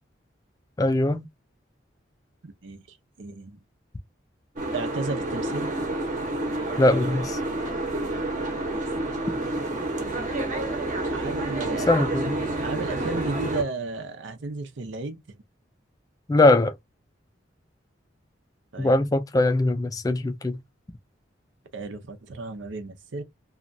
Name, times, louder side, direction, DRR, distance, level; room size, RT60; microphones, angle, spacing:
voice 1, 0.8-1.3 6.8-7.4 11.9-12.4 16.3-16.7 18.8-20.6, left 2 dB, 20° left, 0.3 m, -21 dB
voice 2, 2.4-2.8 3.2-3.6 4.7-5.7 8.6-8.8 9.9-10.2 11.1-11.9 12.5-15.2 18.7-19.0 21.7-23.2, right 3 dB, 80° right, 0.6 m, -34 dB
Boat Water vehicle, 4.6-13.6, right 2 dB, 40° right, 0.8 m, -29 dB
2.9 x 2.3 x 2.5 m
head